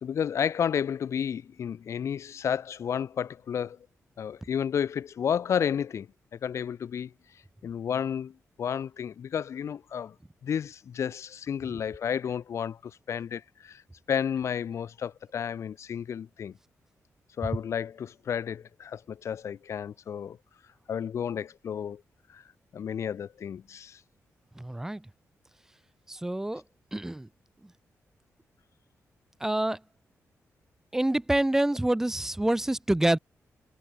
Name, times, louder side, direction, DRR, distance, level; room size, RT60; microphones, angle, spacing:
voice 1, 0.0-3.8 4.2-7.1 7.6-10.1 10.4-13.8 14.1-16.5 17.4-20.4 20.9-22.0 22.3-22.4 22.7-24.0, left 8 dB, 60° left, 3.7 m, -32 dB
voice 2, 24.6-25.0 26.1-26.6 26.9-27.3 29.4-29.8 30.9-33.2, right 1 dB, 10° right, 2.7 m, -26 dB
wide cardioid pair, 170°, 6 cm